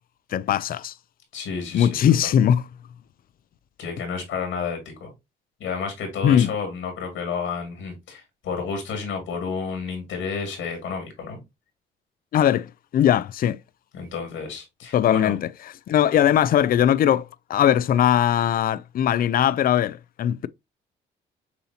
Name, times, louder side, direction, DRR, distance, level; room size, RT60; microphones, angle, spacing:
voice 1, 0.3-0.9 1.7-2.6 6.2-6.5 12.3-13.6 14.9-15.5 15.9-20.5, left 10 dB, 45° left, 0.4 m, -20 dB
voice 2, 1.3-1.9 2.2-2.3 3.8-5.1 5.6-11.4 13.9-15.3, left 5 dB, 80° left, 2.1 m, -31 dB
6.8 x 2.8 x 2.7 m
cardioid pair, 90°, 20 cm